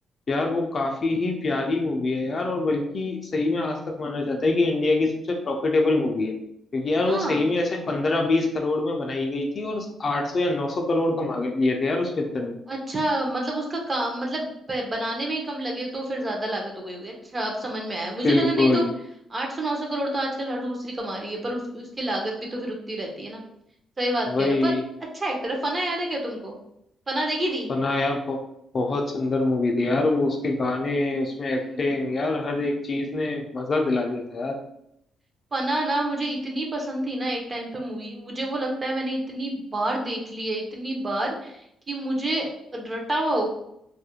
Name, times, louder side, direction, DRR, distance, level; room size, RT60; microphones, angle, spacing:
voice 1, 0.3-6.3 6.7-12.6 18.2-18.9 24.3-24.8 27.7-28.4 28.7-34.5, left 2 dB, 40° left, 2 dB, 0.4 m, -24 dB
voice 2, 7.0-7.5 12.7-18.8 19.3-23.4 24.0-24.8 25.1-26.6 27.1-27.7 31.6-31.9 35.5-43.5, right 1 dB, 25° right, 0 dB, 0.6 m, -28 dB
2.3 x 2.1 x 2.8 m, 0.76 s
cardioid pair, 120°, 0 cm